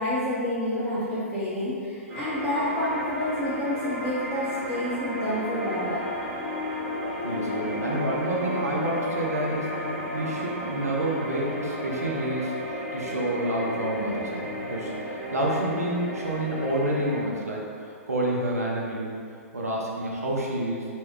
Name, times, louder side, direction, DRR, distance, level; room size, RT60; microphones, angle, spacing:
voice 1, 0.0-6.0, left 1 dB, ahead, -13 dB, 0.6 m, -28 dB
sound 1, 2.1-17.2, left 1 dB, 45° right, 0.9 m, -33 dB
voice 2, 7.2-19.2 19.5-20.8, right 1 dB, 80° right, -3 dB, 0.6 m, -29 dB
3.1 x 2.2 x 3.1 m, 2.3 s
figure-of-eight pair, 115°, 8 cm